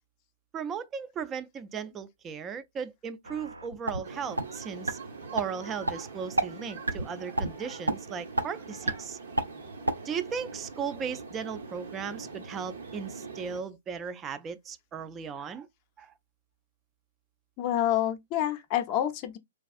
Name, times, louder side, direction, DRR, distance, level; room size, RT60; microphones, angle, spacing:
voice 1, 0.5-5.0 5.3-9.2 10.0-15.7 16.0-16.1, right 6 dB, 20° right, 0.4 m, -37 dB
sound 1, 3.3-4.0 4.4-4.5 4.9-5.0 5.4-5.5 5.9-6.0 6.4-6.5 6.9-7.1 7.4-7.5 7.9-8.0 8.4-8.5 8.9-9.0 9.4-9.5 9.9-10.0, right 1 dB, 85° right, 0.5 m, -27 dB
sound 2, 4.0-13.6, right 4 dB, 65° right, 0.9 m, -43 dB
voice 2, 17.6-19.4, left 11 dB, 35° left, 0.6 m, -28 dB
3.4 x 2.3 x 2.4 m
figure-of-eight pair, 115°, 0 cm